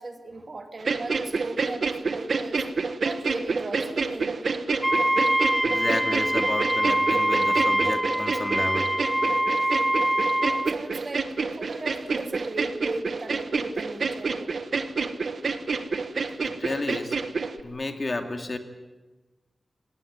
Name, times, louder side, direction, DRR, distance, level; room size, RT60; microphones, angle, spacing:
voice 1, 0.0-2.7 3.0-4.4 10.5-14.6, right 2 dB, 40° right, 5 dB, 2.6 m, -37 dB
sound 1, 0.8-17.6, right 4 dB, 60° right, 1.5 m, -28 dB
Wind instrument woodwind instrument, 4.8-10.7, right 1 dB, 5° right, 0.9 m, -24 dB
voice 2, 5.7-8.9 9.6-9.8 16.4-17.2 17.6-18.6, left 2 dB, 35° left, 5 dB, 2.3 m, -31 dB
27.5 x 19.5 x 9.5 m, 1.2 s
wide cardioid pair, 140°, 0 cm